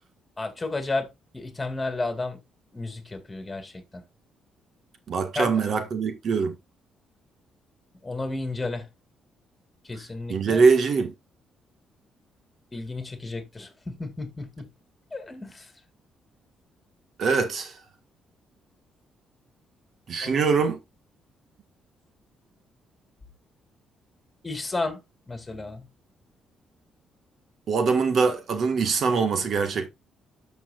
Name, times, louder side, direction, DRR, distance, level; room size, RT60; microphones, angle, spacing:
voice 1, 0.4-2.4 2.7-4.0 5.4-5.6 8.0-8.9 9.9-10.6 12.7-14.7 15.1-15.7 20.2-20.4 24.4-25.0 25.3-25.9, left 2 dB, 20° left, 2.4 m, -32 dB
voice 2, 5.1-6.5 10.3-11.1 17.2-17.7 20.1-20.8 27.7-29.9, right 5 dB, 60° right, 1.5 m, -23 dB
12.5 x 6.0 x 2.4 m
cardioid pair, 90°, 0 cm